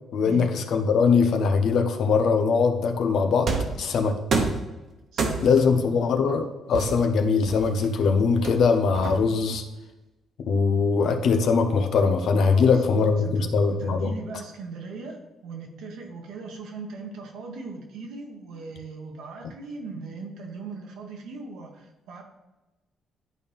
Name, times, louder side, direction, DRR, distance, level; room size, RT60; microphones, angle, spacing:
voice 1, 0.1-3.5 3.8-4.4 5.4-9.6 10.4-14.1, left 5 dB, 70° left, 6 dB, 0.9 m, -22 dB
sound 1, 3.5-3.8 4.3-4.7 5.2-5.7 6.7-7.9 8.4-9.5, right 4 dB, 60° right, 1.2 m, -28 dB
voice 2, 5.1-6.0 12.4-22.2, right 4 dB, 85° right, 2 dB, 1.4 m, -39 dB
11.0 x 4.3 x 3.6 m, 1.0 s
cardioid pair, 90°, 0 cm